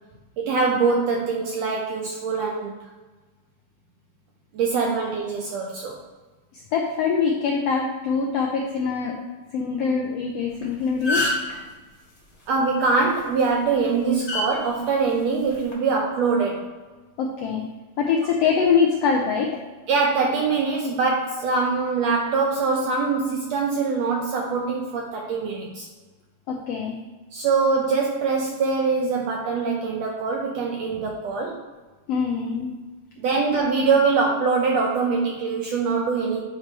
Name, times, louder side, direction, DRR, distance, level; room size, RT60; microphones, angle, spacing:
voice 1, 0.4-2.8 4.5-6.0 12.5-16.7 19.9-25.9 27.3-31.6 33.2-36.4, right 4 dB, 80° right, 0 dB, 1.5 m, -23 dB
voice 2, 6.7-9.1 9.5-11.3 17.2-17.7 18.0-19.6 26.5-27.0 32.1-32.7, left 5 dB, 80° left, 1 dB, 1.4 m, -23 dB
sound 1, 10.5-10.6 10.9-11.5 13.2-13.4 14.3-14.4 15.5-15.7, left 2 dB, 35° left, 1.1 m, -24 dB
8.9 x 3.0 x 5.2 m, 1.3 s
omnidirectional pair, 3.6 m